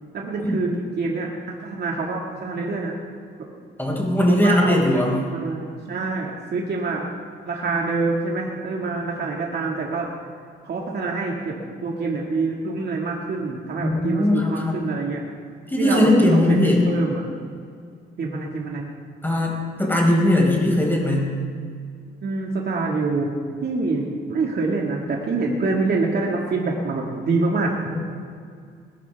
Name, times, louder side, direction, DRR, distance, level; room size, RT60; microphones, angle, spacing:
voice 1, 0.1-3.0 4.2-5.0 5.3-7.1 7.5-10.1 10.6-11.6 11.8-15.2 15.8-17.3 18.2-18.9 22.2-23.3 23.6-27.8, right 3 dB, 55° right, -1 dB, 2.1 m, -26 dB
voice 2, 3.8-5.1 13.8-14.7 15.7-16.8 19.2-21.3 27.9-28.0, left 1 dB, 10° left, -2 dB, 4.5 m, -19 dB
20.5 x 13.0 x 3.6 m, 2.2 s
cardioid pair, 90°, 20 cm